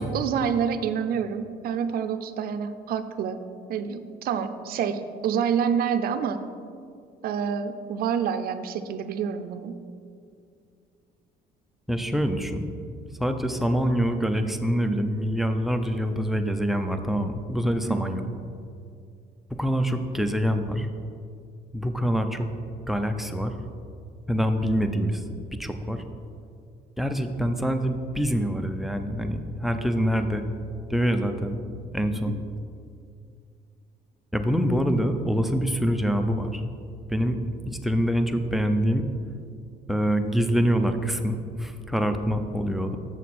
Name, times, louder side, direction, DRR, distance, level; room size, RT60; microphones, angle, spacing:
voice 1, 0.0-3.4 3.7-6.4 7.2-9.8, right 7 dB, 60° right, 9 dB, 0.5 m, -27 dB
voice 2, 11.9-12.6 13.2-18.3 19.5-20.9 21.7-22.5 22.9-23.5 24.3-25.2 25.6-26.0 27.0-30.5 30.9-31.6 31.9-32.4 34.3-36.6 37.1-37.4 37.8-39.1 39.9-43.0, equal, ahead, 7 dB, 0.5 m, -25 dB
7.2 x 6.4 x 4.2 m, 2.3 s
cardioid pair, 110°, 17 cm